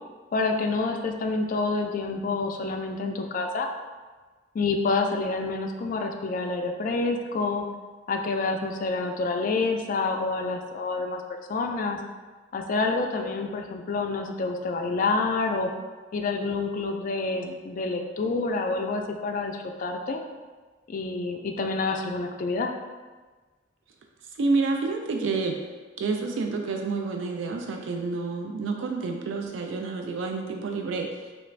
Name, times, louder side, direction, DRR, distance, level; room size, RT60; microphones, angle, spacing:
voice 1, 0.3-3.7 4.5-7.7 8.1-11.2 11.5-12.0 12.5-15.7 16.1-20.2 20.9-22.7, left 3 dB, 45° left, 4 dB, 0.3 m, -28 dB
voice 2, 24.4-25.6 26.0-31.3, right 3 dB, 85° right, 3 dB, 0.3 m, -29 dB
3.1 x 2.5 x 3.1 m, 1.4 s
head